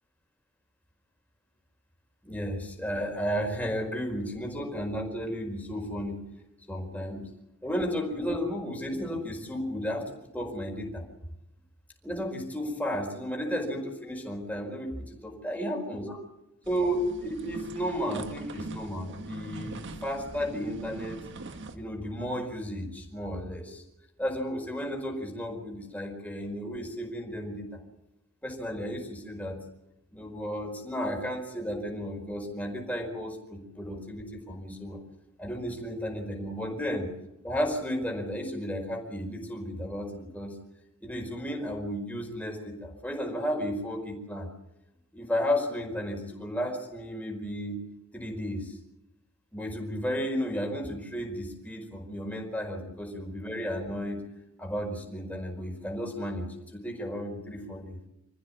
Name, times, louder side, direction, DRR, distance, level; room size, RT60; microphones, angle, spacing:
voice 1, 2.2-6.2 6.7-7.3 7.6-11.0 12.0-16.2 16.7-21.2 21.5-23.8 24.2-27.6 28.4-29.6 30.1-35.0 35.4-37.1 37.4-40.5 41.0-44.5 45.1-47.8 48.1-48.8 49.5-54.2 54.6-58.0, equal, 5° left, 2 dB, 4.8 m, -33 dB
sound 1, 16.6-21.7, right 2 dB, 55° right, 1.7 m, -42 dB
26.5 x 15.0 x 8.7 m, 0.90 s
head